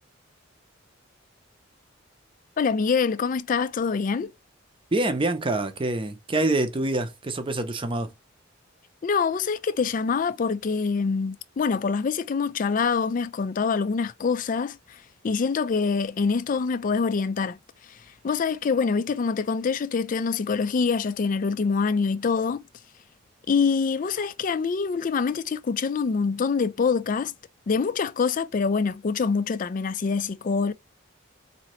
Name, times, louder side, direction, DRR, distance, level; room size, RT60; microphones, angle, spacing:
voice 1, 2.6-4.3 9.0-15.0 15.2-17.6 17.9-22.6 23.5-27.3 27.7-30.7, left 5 dB, 40° left, 0.3 m, -25 dB
voice 2, 4.9-8.1, right 2 dB, 25° right, 0.6 m, -26 dB
4.1 x 2.8 x 3.0 m
head